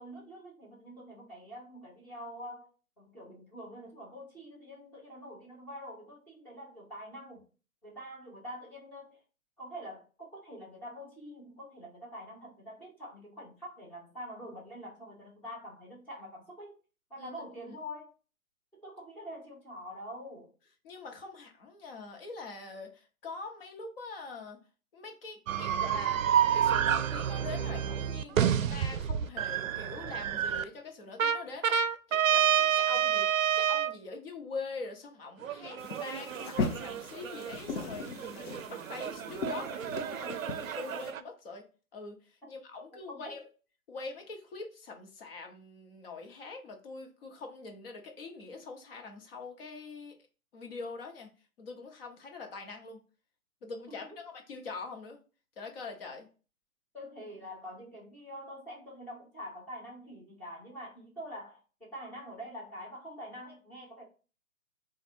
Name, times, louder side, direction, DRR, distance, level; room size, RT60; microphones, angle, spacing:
voice 1, 0.0-2.7 3.0-7.4 7.8-9.2 9.6-16.8 17.1-18.1 18.7-20.5 38.5-38.8 42.9-43.4 53.9-54.2 56.9-64.0, equal, 5° left, 0.7 m, -45 dB
voice 2, 20.8-24.6 24.9-26.2 26.5-31.8 32.1-33.3 33.5-39.8 40.2-41.6 41.9-43.4 43.9-50.2 50.5-51.3 51.6-53.0 53.6-55.2 55.6-56.3, left 3 dB, 40° left, 1.2 m, -44 dB
sound 1, 25.5-30.6 31.2-33.9 35.4-41.2, right 9 dB, 65° right, 0.5 m, -29 dB
sound 2, 35.8-41.1, left 4 dB, 55° left, 0.8 m, -38 dB
3.9 x 2.5 x 4.4 m
hypercardioid pair, 140°, 43 cm